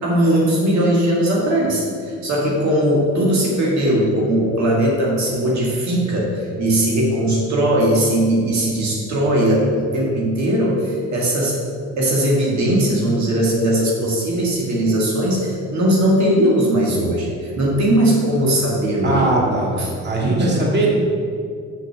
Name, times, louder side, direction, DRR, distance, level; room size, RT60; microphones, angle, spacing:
voice 1, 0.0-11.6 12.0-19.2 19.8-19.9 20.2-20.7, right 1 dB, 65° right, -3 dB, 1.9 m, -19 dB
voice 2, 19.0-20.9, right 2 dB, 35° right, -3 dB, 2.0 m, -21 dB
6.0 x 5.7 x 6.7 m, 2.3 s
cardioid pair, 90°, 30 cm